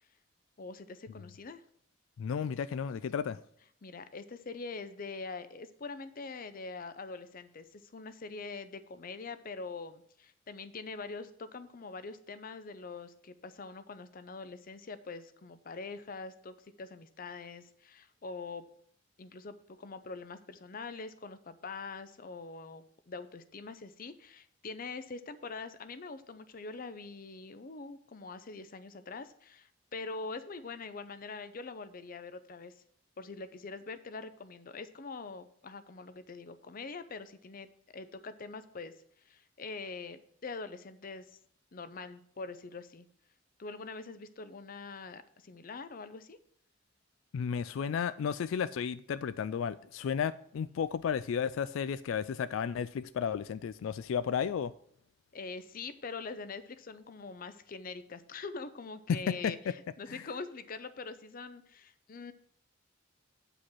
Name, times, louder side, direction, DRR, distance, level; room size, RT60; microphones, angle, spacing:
voice 1, 0.6-1.6 3.3-3.4 3.8-18.6 19.2-32.7 33.2-38.9 39.2-41.4 41.7-43.1 43.6-46.4 55.3-62.3, left 4 dB, 45° left, 0.6 m, -44 dB
voice 2, 2.2-3.4 47.3-54.7 59.3-59.5 60.1-60.2, left 7 dB, 90° left, 0.3 m, -33 dB
8.5 x 5.0 x 6.0 m
head